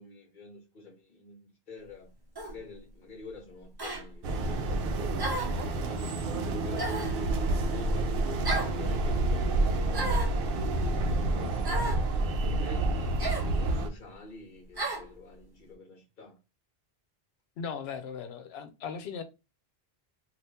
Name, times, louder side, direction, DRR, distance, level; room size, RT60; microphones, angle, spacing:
voice 1, 0.0-2.1 2.4-8.1 8.5-13.2 13.5-16.4, left 3 dB, 55° left, 1.0 m, -49 dB
sound 1, 2.4-2.6 3.8-4.0 5.2-5.6 6.8-7.2 8.4-8.8 9.9-10.4 11.6-12.0 13.2-13.5 14.8-15.1, right 2 dB, 25° right, 0.7 m, -33 dB
sound 2, 4.2-13.9, right 2 dB, 70° right, 0.7 m, -29 dB
voice 2, 17.6-19.2, left 6 dB, 85° left, 0.8 m, -38 dB
2.7 x 2.4 x 3.4 m
omnidirectional pair, 1.0 m